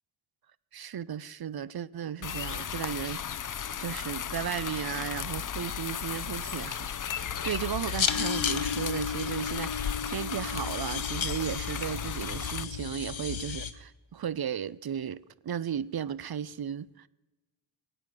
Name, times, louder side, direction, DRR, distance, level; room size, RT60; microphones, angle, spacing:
voice 1, 0.7-3.5 3.8-17.1, right 9 dB, 55° right, 0.6 m, -35 dB
sound 1, 2.2-12.6, left 8 dB, 45° left, 0.5 m, -36 dB
sound 2, 7.2-13.7, left 6 dB, 85° left, 1.2 m, -33 dB
21.0 x 8.9 x 6.3 m
wide cardioid pair, 95°, 45 cm